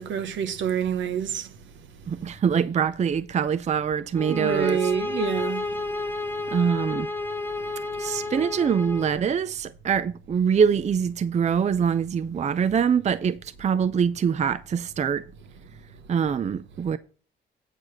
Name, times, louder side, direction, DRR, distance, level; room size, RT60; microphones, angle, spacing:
voice 1, 0.0-1.5 4.3-5.7, right 8 dB, 70° right, 1.0 m, -27 dB
voice 2, 2.1-4.8 6.5-7.1 8.0-15.2 16.1-17.0, right 7 dB, 35° right, 0.5 m, -24 dB
sound 1, 4.1-9.1, left 2 dB, 10° left, 1.0 m, -31 dB
8.9 x 4.7 x 6.5 m
cardioid pair, 90°, 20 cm